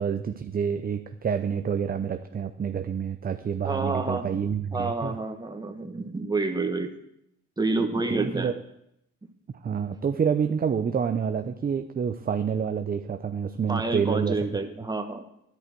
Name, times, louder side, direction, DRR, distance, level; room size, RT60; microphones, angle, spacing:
voice 1, 0.0-5.2 8.1-8.5 9.6-14.4, right 7 dB, 30° right, 7 dB, 0.6 m, -28 dB
voice 2, 3.6-4.3 4.7-6.9 7.6-8.5 13.7-15.2, right 3 dB, 15° right, 4 dB, 1.5 m, -28 dB
10.5 x 10.5 x 4.6 m, 0.78 s
cardioid pair, 90°, 30 cm